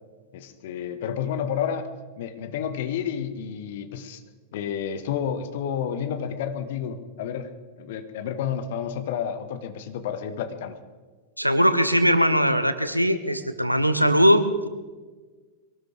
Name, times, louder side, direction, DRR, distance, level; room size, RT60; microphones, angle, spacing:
voice 1, 0.3-4.2 4.5-7.5 7.8-10.8, left 8 dB, 55° left, 9 dB, 1.3 m, -30 dB
voice 2, 11.4-14.7, equal, 90° right, 11 dB, 1.0 m, -20 dB
22.5 x 18.5 x 3.5 m, 1.4 s
figure-of-eight pair, 90°, 0 cm